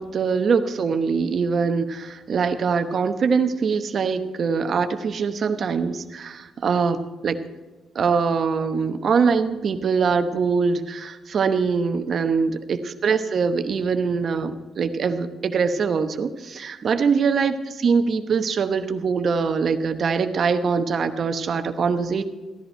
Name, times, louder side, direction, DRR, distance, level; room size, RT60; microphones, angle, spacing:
voice 1, 0.0-7.4 7.9-22.2, right 5 dB, 50° right, 9 dB, 0.9 m, -23 dB
15.0 x 11.0 x 4.4 m, 1.2 s
cardioid pair, 90°, 0 cm